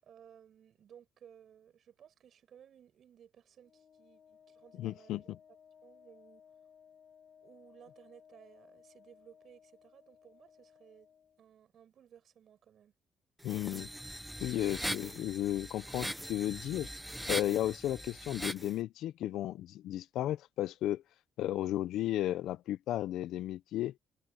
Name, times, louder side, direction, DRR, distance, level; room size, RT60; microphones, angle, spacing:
voice 1, 0.0-5.3 5.8-6.4 7.4-11.1 11.4-12.9, right 9 dB, 65° right, 6.6 m, -59 dB
Wind instrument woodwind instrument, 3.6-11.4, left 7 dB, 55° left, 3.4 m, -61 dB
voice 2, 4.8-5.2 13.4-13.9 14.4-16.9 17.3-21.0 21.4-23.9, left 13 dB, 85° left, 0.6 m, -34 dB
sound 1, 13.4-18.7, equal, 5° right, 0.7 m, -40 dB
cardioid pair, 90°, 0 cm